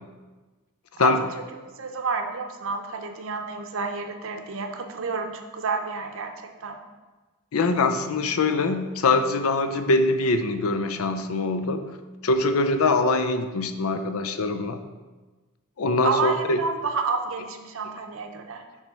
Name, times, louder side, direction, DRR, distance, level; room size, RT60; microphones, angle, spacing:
voice 1, 1.6-6.8 16.0-18.6, right 4 dB, 65° right, 6 dB, 0.7 m, -30 dB
voice 2, 7.5-11.8 12.2-14.8 15.8-16.6, left 3 dB, 85° left, 9 dB, 0.5 m, -23 dB
7.3 x 3.3 x 5.3 m, 1.3 s
head